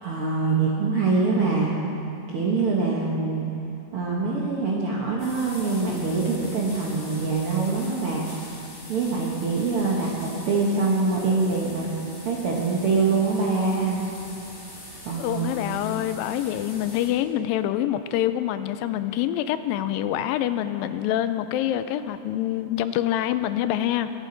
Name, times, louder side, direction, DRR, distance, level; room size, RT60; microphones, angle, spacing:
voice 1, 0.0-1.7 2.3-3.5 3.9-8.3 8.9-11.9 12.2-14.0 15.0-15.6, right 4 dB, 65° right, -4 dB, 1.3 m, -24 dB
sound 1, 5.2-17.1, left 1 dB, 60° left, 5.5 m, -43 dB
voice 2, 15.2-24.1, left 12 dB, 85° left, 11 dB, 2.2 m, -26 dB
24.0 x 8.5 x 3.9 m, 2.7 s
omnidirectional pair, 4.1 m